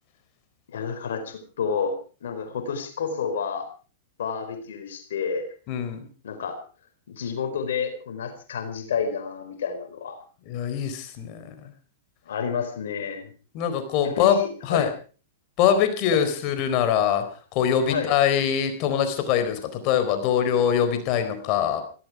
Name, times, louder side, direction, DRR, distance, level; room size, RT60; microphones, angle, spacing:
voice 1, 0.7-3.7 4.2-5.5 6.2-6.6 7.1-10.2 12.3-13.3 14.0-14.9 16.1-16.2 17.9-18.1, left 6 dB, 75° left, 6 dB, 4.4 m, -30 dB
voice 2, 5.7-6.1 10.5-11.4 13.5-14.9 15.6-17.3 17.5-21.8, left 8 dB, 45° left, 9 dB, 4.2 m, -23 dB
17.0 x 17.0 x 4.8 m, 0.38 s
hypercardioid pair, 125°, 0 cm